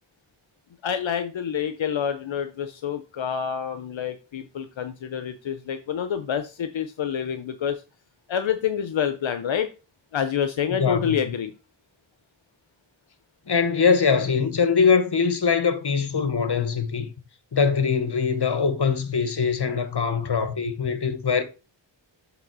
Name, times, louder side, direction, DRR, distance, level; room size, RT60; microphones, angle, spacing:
voice 1, 0.8-7.8 8.3-9.7 10.1-11.5, left 8 dB, 75° left, 0.7 m, -27 dB
voice 2, 10.7-11.2 13.5-17.1 17.5-21.4, left 5 dB, 60° left, 1.2 m, -22 dB
7.5 x 3.4 x 6.0 m
cardioid pair, 50°, 46 cm